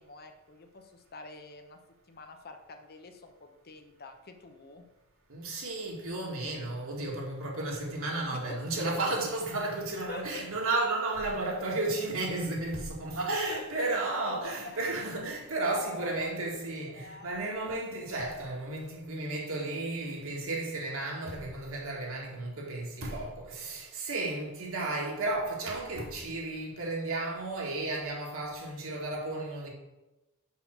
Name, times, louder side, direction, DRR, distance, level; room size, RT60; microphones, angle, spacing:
voice 1, 0.0-1.8 2.1-4.8 8.5-8.6 10.1-10.4 13.5-14.0 14.3-14.8 15.9-17.8, left 3 dB, 45° left, 0.8 m, -46 dB
voice 2, 5.3-29.7, right 2 dB, 65° right, 2.0 m, -33 dB
5.7 x 5.6 x 6.0 m
head